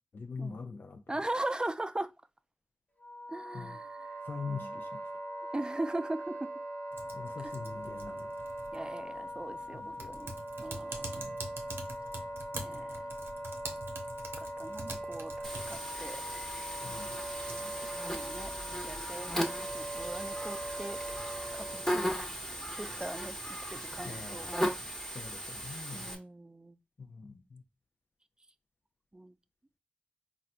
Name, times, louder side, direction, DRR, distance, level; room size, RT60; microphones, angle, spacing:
voice 1, 0.1-1.0 3.5-3.7 4.2-5.0 7.1-8.3 9.7-10.1 11.1-11.5 16.8-17.2 24.0-24.8 25.1-26.1 27.0-27.6, left 4 dB, 70° left, 0.4 m, -43 dB
voice 2, 1.1-2.1 3.3-4.2 4.5-4.8 5.5-6.5 7.4-7.5 8.7-10.3 10.6-11.2 12.6-13.0 14.4-16.2 17.5-17.7 18.1-18.5 18.8-19.3 19.7-21.0 21.5-22.1 22.8-24.7 25.9-26.8 29.1-29.3, right 1 dB, 20° right, 0.3 m, -40 dB
Wind instrument woodwind instrument, 3.0-22.1, right 1 dB, 40° left, 0.9 m, -41 dB
Typing, 6.9-24.9, right 2 dB, 85° right, 0.6 m, -48 dB
Buzz, 15.4-26.1, equal, 10° left, 0.9 m, -37 dB
4.1 x 2.2 x 2.4 m
cardioid pair, 40°, 4 cm